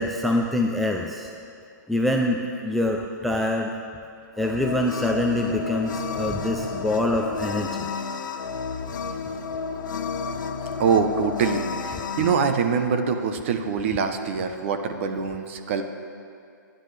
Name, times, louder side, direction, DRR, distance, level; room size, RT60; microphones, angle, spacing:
voice 1, 0.0-1.3 1.9-3.7 4.4-7.9, left 1 dB, ahead, 1 dB, 0.3 m, -25 dB
sound 1, 4.4-12.3, left 5 dB, 75° left, 1.0 m, -31 dB
voice 2, 10.8-15.8, right 6 dB, 40° right, 7 dB, 0.9 m, -24 dB
25.0 x 10.0 x 3.3 m, 2.4 s
hypercardioid pair, 165°, 11 cm